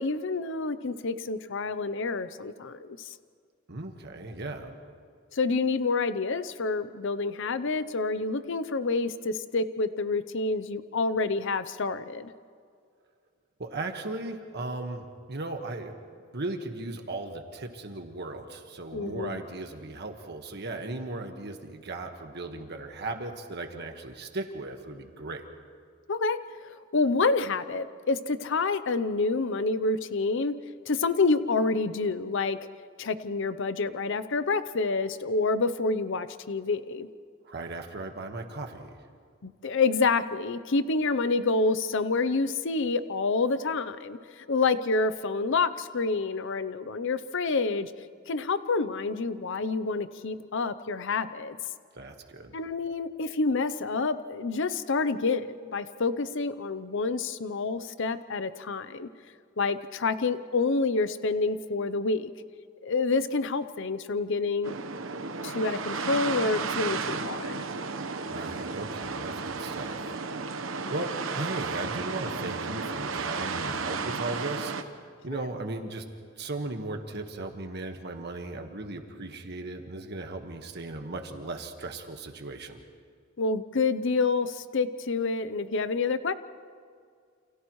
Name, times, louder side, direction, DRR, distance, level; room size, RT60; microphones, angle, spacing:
voice 1, 0.0-3.1 5.3-12.3 18.9-19.4 26.1-26.4 26.6-30.5 30.9-32.6 33.0-37.1 39.4-47.9 48.3-51.6 52.5-59.1 59.6-62.3 62.8-64.7 65.4-67.6 70.8-70.9 75.3-75.4 83.4-86.3, left 3 dB, 65° left, 13 dB, 0.7 m, -28 dB
voice 2, 3.7-4.7 13.6-15.9 16.3-25.4 37.4-39.0 51.9-52.6 68.3-70.2 70.5-76.0 76.4-82.8, right 2 dB, 55° right, 4 dB, 1.5 m, -37 dB
sound 1, 64.6-74.8, right 4 dB, 80° right, 1.1 m, -33 dB
29.5 x 28.0 x 3.2 m, 2.1 s
head